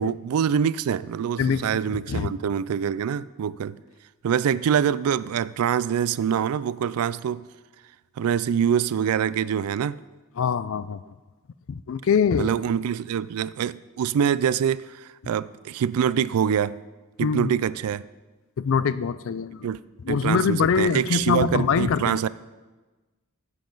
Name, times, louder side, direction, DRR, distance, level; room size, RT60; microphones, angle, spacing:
voice 1, 0.0-3.8 4.2-7.4 8.2-10.0 12.4-16.7 17.2-18.0 19.6-19.8 20.1-22.3, right 8 dB, 85° right, 18 dB, 0.3 m, -25 dB
voice 2, 1.4-1.7 2.1-2.4 10.4-11.0 11.7-12.5 17.2-17.5 18.6-19.7 20.0-22.2, left 6 dB, 65° left, 15 dB, 0.4 m, -23 dB
13.5 x 7.6 x 3.9 m, 1.2 s
head